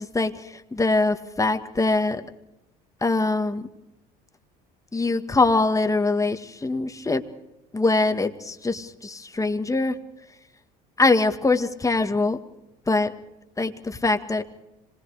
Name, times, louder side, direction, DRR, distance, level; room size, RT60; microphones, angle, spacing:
voice 1, 0.0-2.2 3.0-3.7 4.9-7.2 7.7-10.0 11.0-12.4 12.9-13.1 13.6-14.4, left 3 dB, 15° left, 8 dB, 1.9 m, -23 dB
26.0 x 20.5 x 5.0 m, 0.89 s
supercardioid pair, 80°, 20 cm